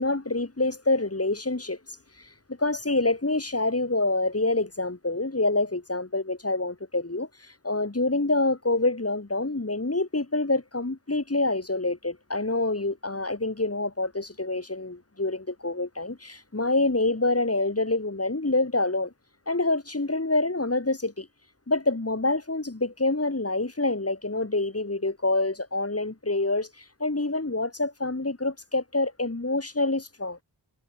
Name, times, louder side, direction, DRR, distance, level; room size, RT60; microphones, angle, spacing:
voice 1, 0.0-19.1 19.5-21.3 21.7-30.4, left 2 dB, 30° left, 5.9 m, -27 dB
wide cardioid pair, 65°, 46 cm